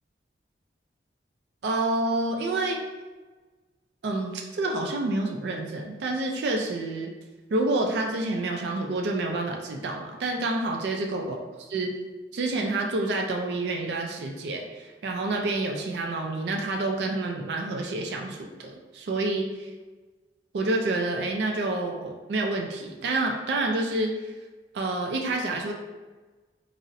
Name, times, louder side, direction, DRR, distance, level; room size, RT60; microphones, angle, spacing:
voice 1, 1.6-2.8 4.0-7.1 7.5-11.4 11.7-11.9 12.3-19.7 20.5-24.3 24.7-25.7, right 2 dB, 65° right, 2 dB, 0.3 m, -28 dB
3.9 x 2.0 x 2.6 m, 1.3 s
head